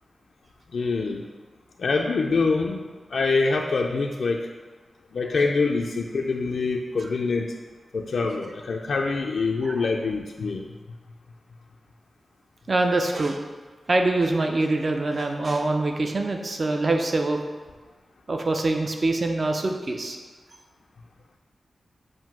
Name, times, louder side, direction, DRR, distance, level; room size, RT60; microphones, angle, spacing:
voice 1, 0.7-1.3 1.8-4.4 5.1-7.5 7.9-10.6, left 4 dB, 65° left, 0 dB, 0.4 m, -25 dB
voice 2, 12.7-13.4 13.9-17.4 18.3-20.2, right 2 dB, 40° right, 4 dB, 0.6 m, -24 dB
7.4 x 2.7 x 5.9 m, 1.3 s
wide cardioid pair, 125°, 0 cm